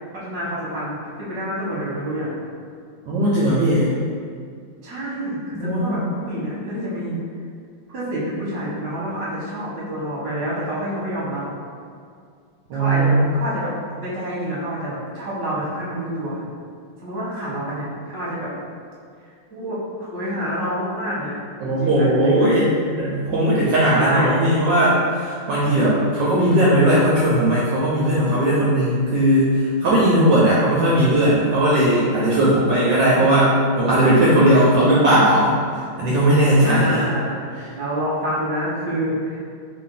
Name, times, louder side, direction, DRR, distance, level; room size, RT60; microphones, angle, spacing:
voice 1, 0.1-2.3 4.8-6.0 6.3-7.2 7.9-11.4 12.7-13.7 14.0-16.4 17.0-18.5 19.5-21.3 21.6-22.5 23.9-24.4 36.6-39.4, right 1 dB, 45° right, -8 dB, 1.1 m, -27 dB
voice 2, 3.1-3.9 5.5-6.0 12.7-13.3 21.6-35.6 36.0-37.1 37.6-37.7, right 1 dB, 75° right, -7 dB, 1.1 m, -18 dB
3.2 x 2.5 x 3.7 m, 2.2 s
omnidirectional pair, 2.2 m